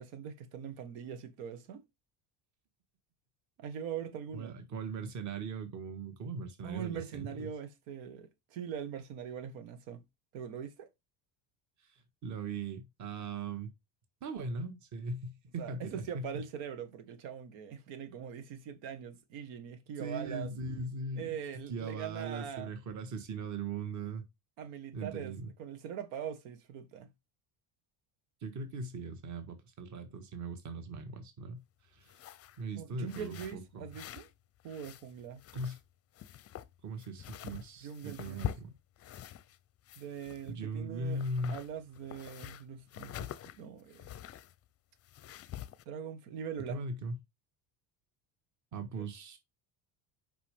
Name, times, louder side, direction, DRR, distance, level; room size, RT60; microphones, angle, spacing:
voice 1, 0.0-1.8 3.6-4.6 6.6-10.0 10.3-10.9 15.6-20.5 21.1-22.7 24.6-27.1 32.7-34.3 34.6-35.4 37.8-38.5 40.0-41.2 41.5-44.1 45.8-46.8 49.0-49.1, right 8 dB, 85° right, 1.7 m, -42 dB
voice 2, 4.3-7.5 12.2-13.7 14.2-16.3 20.0-21.4 21.7-24.2 24.9-25.5 28.4-31.6 31.9-32.1 32.6-33.9 35.5-35.8 36.8-38.7 40.5-41.6 46.7-47.1 48.7-49.4, right 3 dB, 40° right, 1.7 m, -39 dB
sound 1, 32.0-32.6 33.1-34.3 34.6-35.9 36.1-39.6 39.8-40.7 41.1-44.5 45.0-45.8, left 11 dB, 35° left, 0.5 m, -45 dB
8.5 x 5.5 x 3.6 m
cardioid pair, 150°, 44 cm